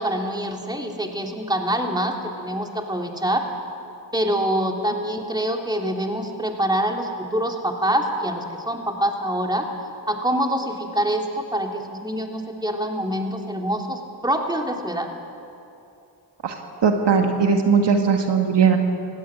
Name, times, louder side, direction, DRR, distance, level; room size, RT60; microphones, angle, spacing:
voice 1, 0.0-3.4 4.1-9.7 10.1-15.1, right 1 dB, 10° right, 2 dB, 3.1 m, -25 dB
voice 2, 16.8-18.8, right 6 dB, 65° right, 4 dB, 1.8 m, -18 dB
17.0 x 16.0 x 9.8 m, 2.7 s
supercardioid pair, 45°, 44 cm